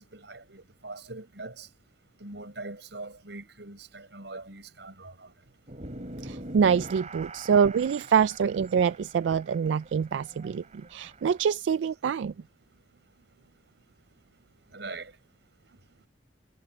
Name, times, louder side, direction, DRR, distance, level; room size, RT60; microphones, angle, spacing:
voice 1, 0.0-1.7 2.2-5.3 14.7-15.2, right 2 dB, 75° right, 6.5 m, -42 dB
sound 1, 5.7-11.5, right 2 dB, 40° right, 3.7 m, -43 dB
voice 2, 6.2-10.6 10.9-12.3, right 7 dB, 90° right, 0.3 m, -25 dB
head